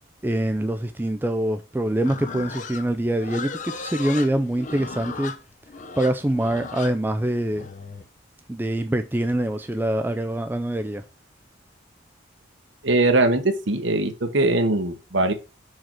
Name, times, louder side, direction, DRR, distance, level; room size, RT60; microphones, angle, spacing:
voice 1, 0.2-5.4 6.0-7.7 8.5-11.0, right 1 dB, 10° right, 0.3 m, -24 dB
Livestock farm animals working animals, 2.0-8.1, left 5 dB, 35° left, 0.6 m, -36 dB
voice 2, 12.8-15.3, right 2 dB, 60° right, 1.0 m, -21 dB
4.8 x 4.4 x 6.0 m
head